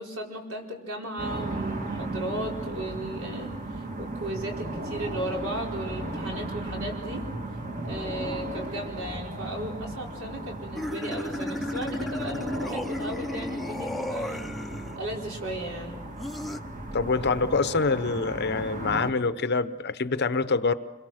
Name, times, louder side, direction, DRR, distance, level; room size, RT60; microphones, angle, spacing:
voice 1, 0.0-7.3 7.8-14.4 15.0-16.0, right 1 dB, 75° right, -1 dB, 4.6 m, -36 dB
sound 1, 1.2-19.1, right 2 dB, 35° right, 1.6 m, -36 dB
sound 2, 10.8-15.0 16.2-16.6, left 1 dB, ahead, 0.7 m, -34 dB
voice 2, 16.9-20.7, left 4 dB, 50° left, 12 dB, 0.8 m, -25 dB
28.0 x 22.5 x 6.5 m, 1.2 s
head